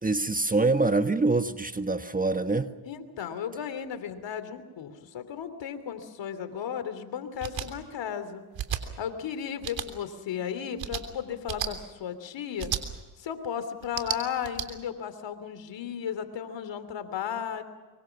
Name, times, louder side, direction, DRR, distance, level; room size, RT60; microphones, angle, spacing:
voice 1, 0.0-2.7, right 3 dB, 15° right, 9 dB, 1.4 m, -25 dB
voice 2, 2.8-8.4 9.0-12.7 13.2-17.6, left 8 dB, 60° left, 11 dB, 3.2 m, -35 dB
sound 1, 7.4-7.7 8.5-8.8 9.6-9.9 10.8-11.0 11.5-11.7 12.6-12.8 13.8-14.7, right 10 dB, 60° right, 3.4 m, -32 dB
24.5 x 24.0 x 6.0 m, 1.3 s
supercardioid pair, 70°, 49 cm